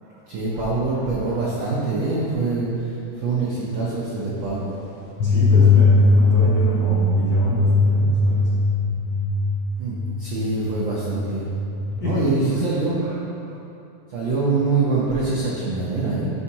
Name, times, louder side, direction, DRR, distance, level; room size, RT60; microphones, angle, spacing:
voice 1, 0.0-4.8 9.8-11.4 12.0-13.2 13.5-13.6 14.1-16.3, right 3 dB, 75° right, -6 dB, 1.1 m, -24 dB
sound 1, 5.2-12.0, left 2 dB, 75° left, 1.1 m, -19 dB
voice 2, 5.2-8.5 12.0-12.5, right 1 dB, 45° left, -10 dB, 1.5 m, -28 dB
9.9 x 5.5 x 2.9 m, 2.9 s
omnidirectional pair, 3.4 m